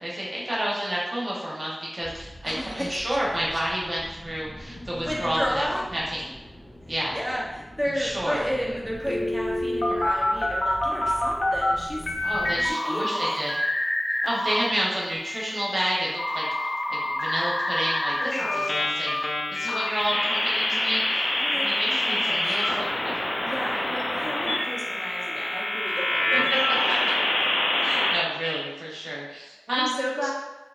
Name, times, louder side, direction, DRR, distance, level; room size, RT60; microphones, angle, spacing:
voice 1, 0.0-5.7 5.9-6.3 6.9-7.2 8.0-8.4 12.2-13.6 14.2-19.1 19.5-23.2 26.5-26.6 27.8-29.9 30.2-30.3, equal, 55° right, -6 dB, 0.9 m, -30 dB
sound 1, 2.0-12.7, equal, 90° left, 1.2 m, -43 dB
voice 2, 2.4-3.2 5.0-5.8 7.1-12.3 12.6-13.4 18.2-18.7 21.4-22.6 23.4-27.1 29.4-30.3, equal, 5° left, -5 dB, 0.7 m, -32 dB
sound 2, 9.1-11.7 12.0-14.6 15.0-28.2, left 1 dB, 70° left, 0.4 m, -26 dB
2.8 x 2.6 x 2.4 m, 1.0 s
wide cardioid pair, 55°, 0 cm